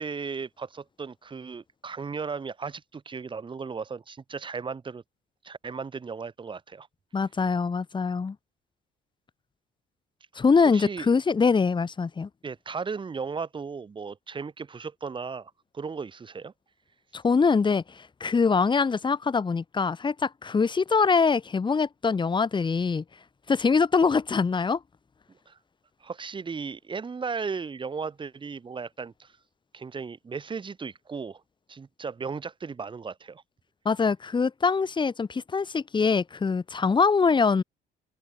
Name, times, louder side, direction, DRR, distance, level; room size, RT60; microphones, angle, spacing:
voice 1, 0.0-5.0 5.4-6.9 10.7-11.1 12.4-16.5 25.5-25.6 26.0-29.3 29.7-31.4 31.7-33.4, right 5 dB, 30° right, 5.6 m, -36 dB
voice 2, 7.1-8.4 10.4-12.3 17.1-23.0 23.5-24.8 33.8-37.6, left 5 dB, 30° left, 6.0 m, -23 dB
open air
cardioid pair, 110°, 17 cm